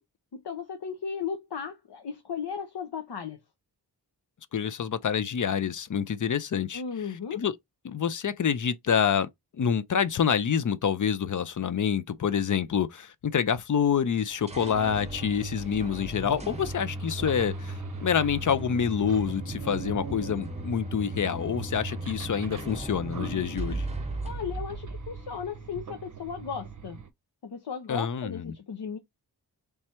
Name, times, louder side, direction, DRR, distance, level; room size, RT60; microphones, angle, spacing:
voice 1, 0.3-3.4 6.7-7.4 24.2-27.0 27.4-29.0, left 6 dB, 75° left, 0.8 m, -36 dB
voice 2, 4.5-6.8 7.3-7.5 7.8-9.3 9.5-23.9 27.9-28.5, left 7 dB, 50° left, 0.5 m, -27 dB
sound 1, 14.1-14.2 14.5-27.1, right 7 dB, 50° right, 0.7 m, -43 dB
sound 2, 14.2-25.8, right 1 dB, 15° right, 0.8 m, -37 dB
3.3 x 3.2 x 4.3 m
wide cardioid pair, 105°, 40 cm